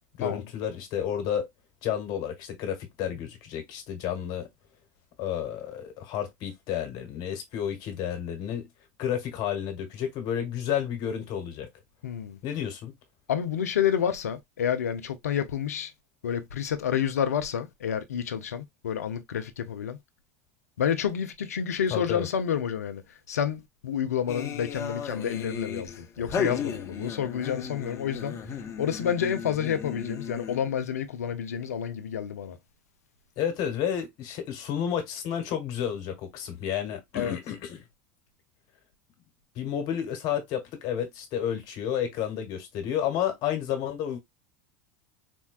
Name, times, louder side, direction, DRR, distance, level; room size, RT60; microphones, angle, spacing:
voice 1, 0.2-1.5 1.8-4.5 5.2-8.7 9.0-11.7 12.4-12.9 21.9-22.3 33.4-37.8 39.5-44.2, left 9 dB, 55° left, 1.3 m, -31 dB
voice 2, 12.0-12.4 13.3-15.9 16.2-20.0 20.8-32.6 37.1-37.4, left 8 dB, 85° left, 0.6 m, -29 dB
sound 1, 24.3-30.8, left 7 dB, 40° left, 0.9 m, -35 dB
4.4 x 2.2 x 2.3 m
hypercardioid pair, 85°, 8 cm